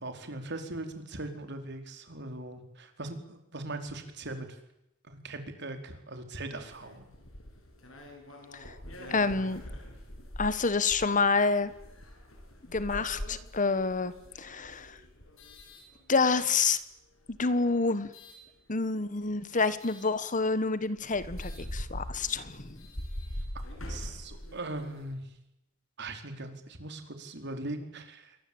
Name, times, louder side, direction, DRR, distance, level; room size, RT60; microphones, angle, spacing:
voice 1, 0.0-4.6 5.0-7.1 23.9-25.2 26.0-28.4, right 2 dB, 60° right, 6 dB, 4.6 m, -40 dB
sound 1, 6.5-16.5 17.2-18.4 19.8-20.1 20.6-20.7 21.0-25.2, equal, 75° left, 7.7 m, -43 dB
voice 2, 9.1-9.6 10.4-11.7 12.7-14.1 14.4-15.0 16.1-16.8 17.3-18.1 18.7-22.8, left 4 dB, 40° left, 14 dB, 1.5 m, -28 dB
28.5 x 23.5 x 8.8 m, 0.86 s
head